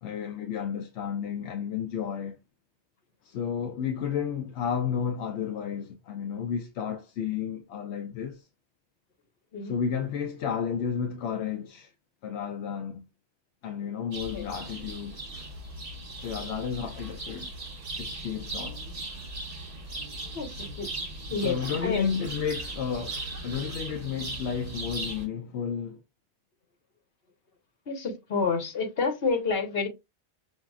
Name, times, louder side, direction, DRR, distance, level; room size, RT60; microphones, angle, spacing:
voice 1, 0.0-2.4 3.2-8.5 9.6-11.9 12.2-13.0 13.6-15.2 16.2-17.5 18.0-18.9 21.3-26.0, left 7 dB, 85° left, 0.8 m, -32 dB
sound 1, 14.1-25.3, right 2 dB, 40° right, 1.1 m, -38 dB
voice 2, 20.3-20.9 21.3-22.0 27.9-29.9, left 4 dB, 65° left, 1.3 m, -29 dB
5.7 x 2.7 x 2.4 m
omnidirectional pair, 1.1 m